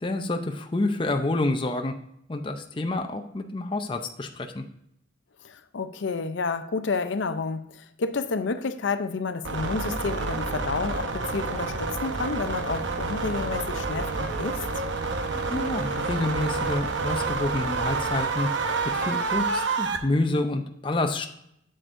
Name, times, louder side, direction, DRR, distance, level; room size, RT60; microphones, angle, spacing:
voice 1, 0.0-1.9 2.3-4.6 15.4-18.5 18.9-21.3, left 2 dB, 25° left, 5 dB, 0.5 m, -28 dB
voice 2, 5.4-14.6, left 4 dB, 80° left, 10 dB, 0.6 m, -30 dB
sound 1, 9.4-20.0, right 4 dB, 85° right, 0.8 m, -28 dB
7.8 x 7.8 x 2.6 m, 0.75 s
head